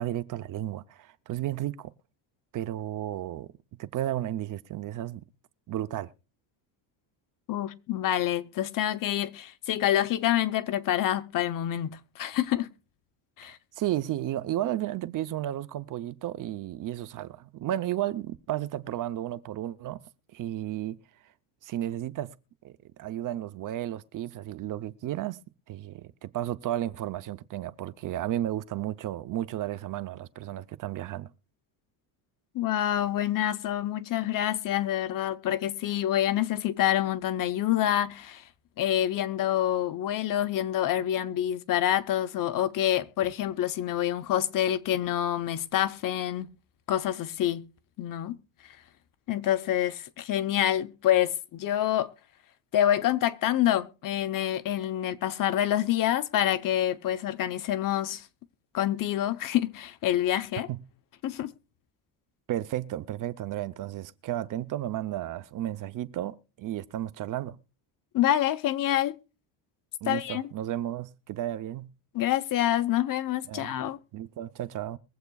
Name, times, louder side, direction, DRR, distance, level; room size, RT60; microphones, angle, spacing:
voice 1, 0.0-1.9 2.5-3.5 3.8-5.3 5.7-6.1 13.4-20.0 20.3-21.0 21.6-22.4 22.6-25.4 25.7-31.3 60.7-60.8 62.5-67.6 70.0-71.9 73.5-73.7 74.1-75.0, right 13 dB, 45° right, 0.6 m, -33 dB
voice 2, 7.5-12.7 13.4-13.6 32.5-38.4 38.8-46.5 46.9-47.6 48.0-48.4 49.3-52.1 52.7-58.2 58.7-60.7 61.2-61.5 68.1-69.2 70.1-70.5 72.1-74.0, left 12 dB, 45° left, 0.8 m, -27 dB
23.0 x 7.9 x 2.3 m
cardioid pair, 145°, 45 cm